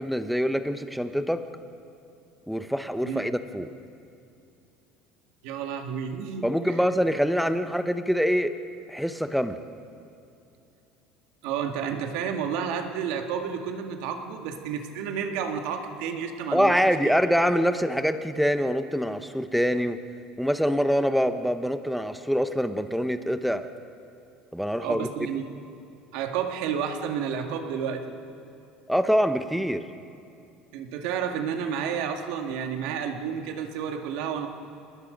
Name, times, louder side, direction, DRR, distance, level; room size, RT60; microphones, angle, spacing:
voice 1, 0.0-1.4 2.5-3.7 6.4-8.6 8.9-9.6 16.5-20.0 20.4-23.7 24.5-25.1 28.9-29.8, equal, ahead, 9 dB, 0.9 m, -25 dB
voice 2, 5.4-6.8 11.4-17.2 24.8-25.4 26.1-28.1 30.7-34.5, right 7 dB, 75° right, 5 dB, 2.0 m, -31 dB
28.5 x 20.0 x 5.2 m, 2.5 s
cardioid pair, 140°, 0 cm